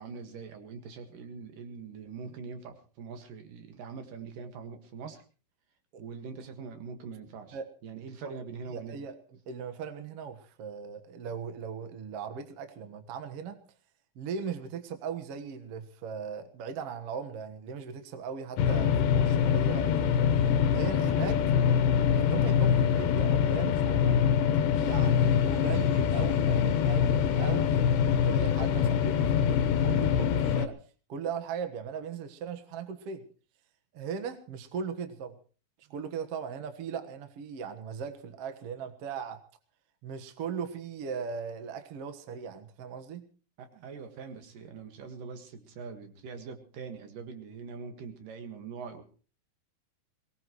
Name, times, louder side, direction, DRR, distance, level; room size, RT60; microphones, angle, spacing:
voice 1, 0.0-5.2 6.0-9.0 43.6-49.0, right 5 dB, 75° right, 6 dB, 3.4 m, -43 dB
voice 2, 8.7-9.2 9.5-13.6 14.2-20.3 20.7-21.4 22.2-24.3 24.7-30.8 31.1-33.2 33.9-35.3 35.8-39.4 40.0-43.2, right 6 dB, 55° right, 8 dB, 2.1 m, -38 dB
sound 1, 18.6-30.7, left 8 dB, 85° left, 2.7 m, -24 dB
22.5 x 19.0 x 3.1 m, 0.38 s
omnidirectional pair, 3.9 m